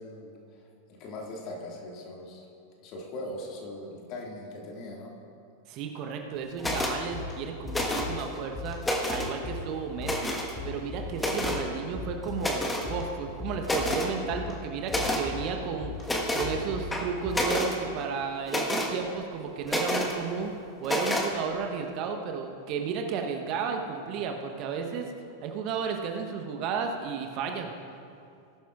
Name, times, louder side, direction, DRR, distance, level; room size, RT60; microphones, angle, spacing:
voice 1, 0.0-2.5 2.8-5.1, left 1 dB, 40° left, -1 dB, 2.1 m, -40 dB
voice 2, 5.7-8.8 9.1-10.3 10.6-25.1 25.4-27.7, right 6 dB, 40° right, 4 dB, 1.0 m, -33 dB
sound 1, 6.6-17.8, left 4 dB, 25° left, 2.5 m, -40 dB
sound 2, 6.6-7.0 7.7-8.2 8.7-9.3 10.0-10.5 11.2-11.6 12.4-12.9 13.3-13.4 13.6-14.1 14.9-15.2 16.0-16.5 16.9-17.8 18.5-18.9 19.7-20.1 20.8-21.3, left 1 dB, 10° left, 1.4 m, -29 dB
19.0 x 11.5 x 2.5 m, 2.5 s
figure-of-eight pair, 90°, 0 cm